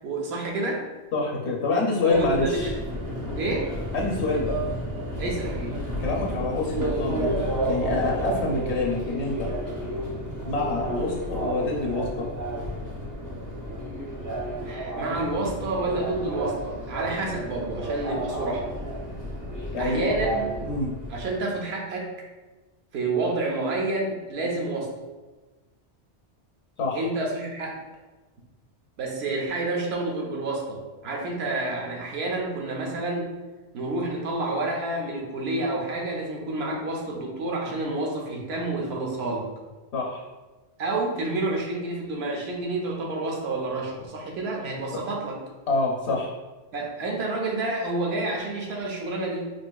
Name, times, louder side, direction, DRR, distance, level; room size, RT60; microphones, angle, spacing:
voice 1, 0.0-0.8 2.0-2.7 3.4-3.7 5.2-5.8 14.6-18.7 19.8-20.5 21.1-22.1 22.9-24.9 26.9-27.8 29.0-33.3 33.7-39.5 40.8-45.4 46.7-49.5, right 2 dB, 70° right, -1 dB, 0.9 m, -29 dB
voice 2, 1.1-2.7 3.9-4.5 6.0-9.5 10.4-12.3 19.7-20.1 20.6-20.9 26.8-27.1 39.9-40.2 45.7-46.3, left 3 dB, 75° left, -1 dB, 0.9 m, -26 dB
Subway metro underground, 2.1-21.3, right 1 dB, 30° right, 0.3 m, -31 dB
4.3 x 2.7 x 2.2 m, 1.2 s
omnidirectional pair, 1.2 m